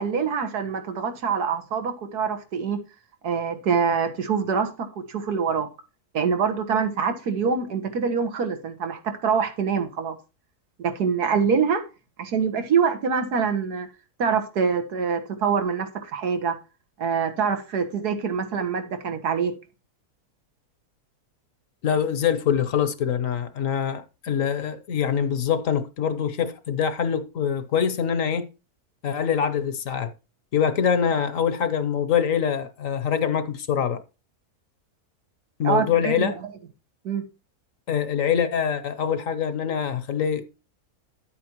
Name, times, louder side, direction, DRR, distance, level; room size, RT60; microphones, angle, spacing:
voice 1, 0.0-2.8 3.2-5.7 6.1-10.2 10.8-11.8 12.2-13.9 14.2-16.6 17.0-19.5 35.6-36.3 37.0-37.2, right 6 dB, 85° right, 1.8 m, -25 dB
voice 2, 21.8-28.5 29.0-30.1 30.5-34.0 35.6-36.4 37.9-40.4, left 8 dB, 60° left, 1.1 m, -24 dB
9.9 x 8.5 x 3.0 m
omnidirectional pair, 1.6 m